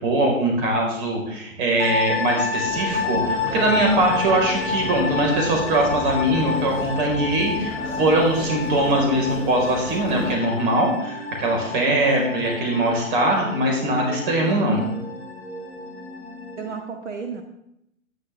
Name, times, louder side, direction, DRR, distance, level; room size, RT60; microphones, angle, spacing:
voice 1, 0.0-14.9, right 1 dB, 40° right, 0 dB, 5.0 m, -21 dB
sound 1, 1.8-16.8, left 4 dB, 50° left, 2.7 m, -30 dB
voice 2, 1.8-2.1 16.6-17.4, right 5 dB, 60° right, 4 dB, 1.9 m, -34 dB
sound 2, 2.2-16.7, equal, 80° right, 6.0 m, -39 dB
sound 3, 2.6-10.4, left 2 dB, 25° left, 2.4 m, -34 dB
19.0 x 9.9 x 3.6 m, 0.78 s
figure-of-eight pair, 120°, 40 cm